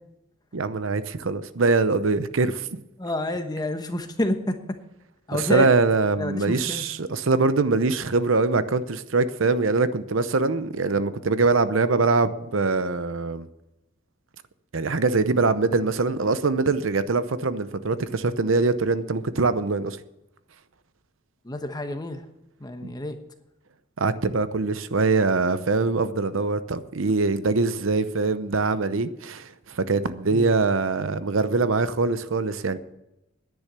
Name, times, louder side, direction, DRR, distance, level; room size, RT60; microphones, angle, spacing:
voice 1, 0.5-2.7 5.3-13.5 14.7-20.0 22.8-22.9 24.0-32.8, right 3 dB, 70° right, 13 dB, 0.7 m, -23 dB
voice 2, 3.0-4.6 5.3-5.7 6.2-6.8 21.4-22.2 22.6-23.2 30.3-30.5, left 1 dB, 20° left, 7 dB, 1.1 m, -28 dB
10.5 x 10.0 x 6.8 m, 0.89 s
head